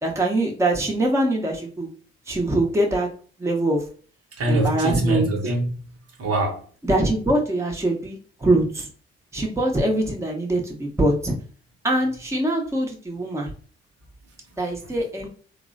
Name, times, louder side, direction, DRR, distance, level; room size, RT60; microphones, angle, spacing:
voice 1, 0.0-1.9 2.3-3.1 3.4-3.8 4.5-5.3 6.8-8.9 9.3-11.3 11.8-13.5 14.6-15.3, right 1 dB, 10° right, 0.8 m, -23 dB
voice 2, 4.4-5.9 6.2-6.6 14.8-14.9, right 2 dB, 50° right, 0.9 m, -24 dB
3.0 x 2.0 x 2.5 m
hypercardioid pair, 40°, 31 cm